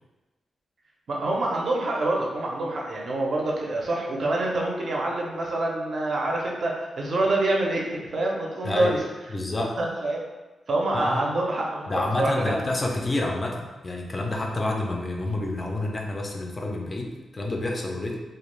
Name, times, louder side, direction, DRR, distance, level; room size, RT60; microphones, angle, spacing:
voice 1, 1.1-9.0 9.8-10.3 10.7-12.5, right 2 dB, 45° right, -2 dB, 0.5 m, -26 dB
voice 2, 8.6-9.0 9.3-9.7 10.9-11.3 11.9-18.2, left 2 dB, 25° left, 1 dB, 0.3 m, -28 dB
2.3 x 2.2 x 3.1 m, 1.1 s
wide cardioid pair, 160°, 0 cm